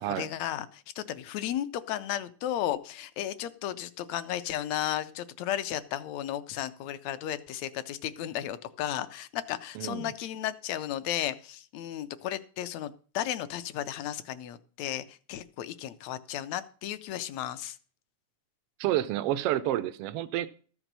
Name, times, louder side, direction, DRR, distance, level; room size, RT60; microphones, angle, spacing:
voice 1, 0.0-17.8, left 12 dB, 75° left, 1.8 m, -34 dB
voice 2, 9.7-10.1 18.8-20.5, right 13 dB, 85° right, 1.3 m, -29 dB
13.5 x 6.1 x 6.7 m
omnidirectional pair, 3.4 m